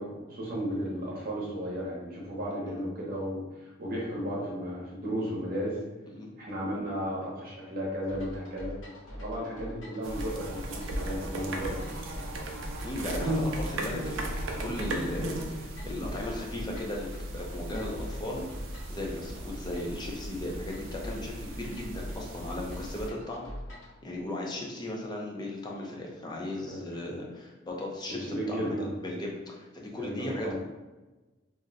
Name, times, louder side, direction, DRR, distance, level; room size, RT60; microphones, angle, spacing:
voice 1, 0.0-5.8 6.4-8.8 9.2-12.3 26.7-26.8 28.2-28.9 30.0-30.5, equal, 50° right, -4 dB, 0.8 m, -34 dB
sound 1, 8.1-23.9, equal, 85° left, 0.9 m, -44 dB
sound 2, 10.0-23.1, right 1 dB, 75° right, 0.5 m, -36 dB
voice 2, 12.8-23.5 24.0-28.8 29.0-30.5, left 1 dB, 20° left, -1 dB, 0.5 m, -37 dB
2.6 x 2.1 x 3.8 m, 1.2 s
head